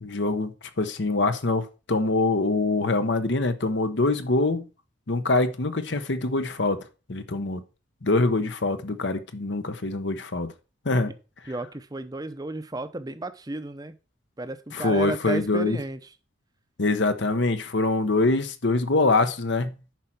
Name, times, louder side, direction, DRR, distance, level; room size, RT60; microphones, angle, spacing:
voice 1, 0.0-4.7 5.1-7.6 8.0-10.5 10.8-11.1 14.7-15.8 16.8-19.7, left 2 dB, 60° left, 0.9 m, -24 dB
voice 2, 11.5-14.0 14.4-16.0, right 2 dB, 20° right, 0.7 m, -33 dB
10.5 x 4.4 x 6.0 m
head